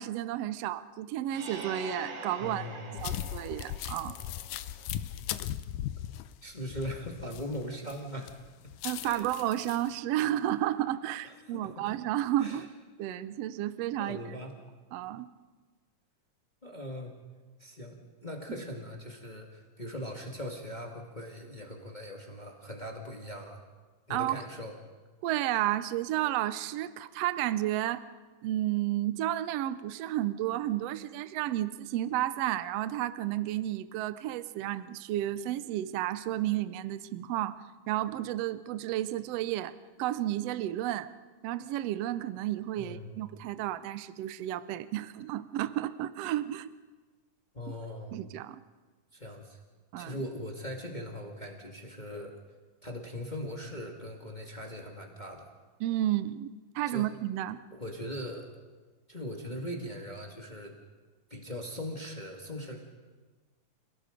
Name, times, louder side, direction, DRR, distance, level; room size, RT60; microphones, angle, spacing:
voice 1, 0.0-2.6 3.0-4.1 8.8-12.7 13.0-14.2 14.9-15.3 24.1-24.4 25.2-28.0 28.4-37.6 37.9-39.7 40.0-41.1 41.4-46.7 48.1-48.6 49.9-50.1 55.8-57.6, right 13 dB, 75° right, 13 dB, 1.5 m, -32 dB
sound 1, 1.3-4.9, right 3 dB, 55° right, 3.2 m, -44 dB
voice 2, 2.4-3.2 6.4-8.4 9.0-9.2 11.2-11.7 12.4-12.6 13.0-13.1 14.0-14.5 16.6-17.2 17.6-23.6 24.1-24.7 42.8-43.2 47.5-48.1 49.1-49.6 50.0-52.3 52.8-55.5 56.8-57.1 57.7-58.5 59.1-60.7 61.3-62.8, equal, 20° left, 1 dB, 1.6 m, -40 dB
sound 2, 3.0-7.9 8.3-9.9, left 12 dB, 80° left, 2.2 m, -38 dB
30.0 x 17.0 x 5.1 m, 1.4 s
omnidirectional pair, 3.6 m